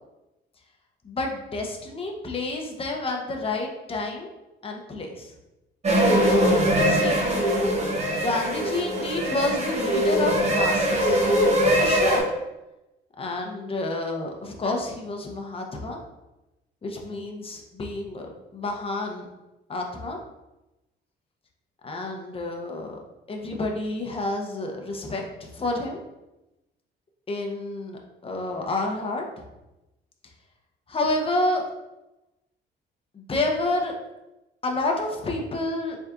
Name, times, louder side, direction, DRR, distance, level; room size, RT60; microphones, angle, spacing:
voice 1, 1.0-4.3 4.6-5.3 6.8-7.2 8.0-11.2 11.7-12.3 13.2-16.0 16.8-19.3 19.7-20.2 21.8-23.0 23.3-26.0 27.3-29.2 30.9-31.6 33.1-33.9 34.6-36.0, left 2 dB, 30° left, 1 dB, 0.8 m, -29 dB
sound 1, 5.8-12.2, equal, 35° right, 1.0 m, -22 dB
4.1 x 3.5 x 2.5 m, 0.98 s
cardioid pair, 90°, 20 cm